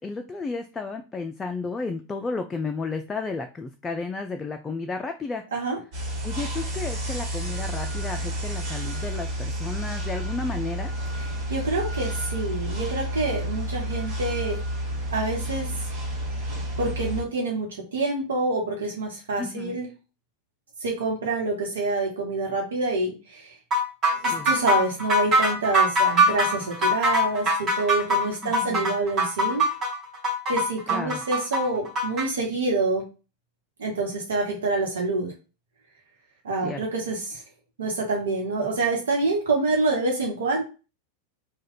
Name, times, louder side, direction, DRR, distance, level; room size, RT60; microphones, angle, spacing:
voice 1, 0.0-5.4 6.2-10.9 19.4-19.8 24.2-24.5 28.4-29.0 30.9-31.2 36.6-36.9, left 3 dB, 15° left, 5 dB, 0.3 m, -33 dB
sound 1, 5.9-17.2, right 1 dB, 45° right, 1.7 m, -30 dB
voice 2, 11.5-14.6 15.1-15.7 16.8-19.9 20.8-23.5 24.2-29.6 30.5-33.0 33.8-35.3 36.4-37.4 37.8-40.6, right 3 dB, 65° right, -1 dB, 1.1 m, -27 dB
sound 2, 23.7-32.3, equal, 30° right, 1.3 m, -22 dB
3.1 x 2.2 x 3.7 m, 0.32 s
figure-of-eight pair, 90°, 0 cm